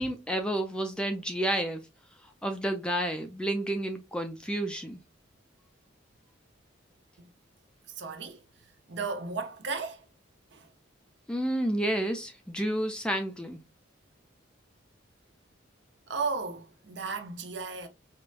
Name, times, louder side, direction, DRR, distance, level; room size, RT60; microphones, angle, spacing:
voice 1, 0.0-1.8 2.4-5.0 11.3-13.6, right 1 dB, 5° left, 0.3 m, -30 dB
voice 2, 7.9-8.4 8.9-10.1 10.5-10.7 16.1-17.9, right 4 dB, 60° right, 0.6 m, -35 dB
4.6 x 2.1 x 2.4 m
head